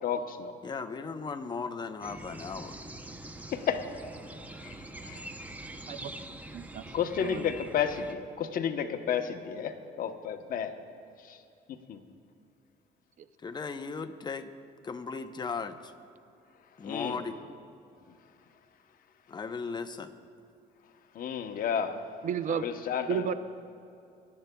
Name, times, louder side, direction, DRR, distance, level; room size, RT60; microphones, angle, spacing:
voice 1, 0.0-0.5 3.5-3.9 4.6-4.7 5.0-5.2 6.9-10.8 11.2-11.4 11.9-12.0 16.8-17.2 21.1-22.0 22.5-23.2, left 8 dB, 55° left, 7 dB, 0.9 m, -32 dB
voice 2, 0.6-2.8 13.4-14.5 14.8-15.9 16.8-17.4 19.3-20.1, left 4 dB, 25° left, 8 dB, 0.7 m, -37 dB
sound 1, 2.0-8.1, right 1 dB, 10° right, 0.7 m, -44 dB
voice 3, 6.5-6.8 7.2-7.5 13.2-13.3 22.2-22.7 23.1-23.3, right 8 dB, 50° right, 12 dB, 0.5 m, -32 dB
24.5 x 12.0 x 2.3 m, 2.5 s
cardioid pair, 110°, 17 cm